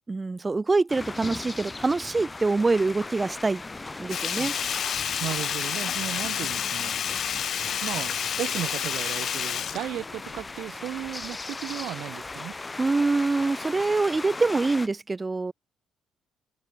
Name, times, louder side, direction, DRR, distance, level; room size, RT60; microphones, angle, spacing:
voice 1, 0.1-3.6 4.0-4.6 12.8-15.5, right 3 dB, 25° right, 1.1 m, -25 dB
sound 1, 0.9-14.9, left 3 dB, 20° left, 3.7 m, -38 dB
Sink (filling or washing), 4.1-10.6 10.9-11.0, left 8 dB, 60° left, 1.0 m, -30 dB
voice 2, 5.2-7.4 7.8-12.6, right 13 dB, 80° right, 3.5 m, -35 dB
open air
cardioid pair, 90°, 0 cm